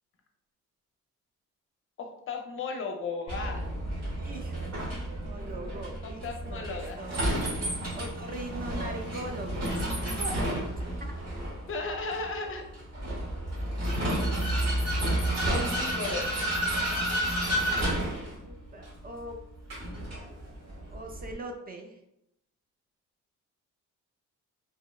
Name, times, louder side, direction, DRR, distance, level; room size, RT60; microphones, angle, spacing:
voice 1, 2.0-3.7 6.0-7.0 11.7-12.6 15.5-16.3, left 3 dB, 45° left, 4 dB, 0.5 m, -35 dB
Vehicle, 3.3-21.3, right 1 dB, 55° right, 1.1 m, -31 dB
voice 2, 4.2-4.9 5.2-7.2 7.9-10.6 11.0-11.1 17.8-17.9 18.2-19.4 20.9-22.0, right 2 dB, 30° right, 2 dB, 0.4 m, -41 dB
2.7 x 2.0 x 2.2 m, 0.79 s
cardioid pair, 90°, 30 cm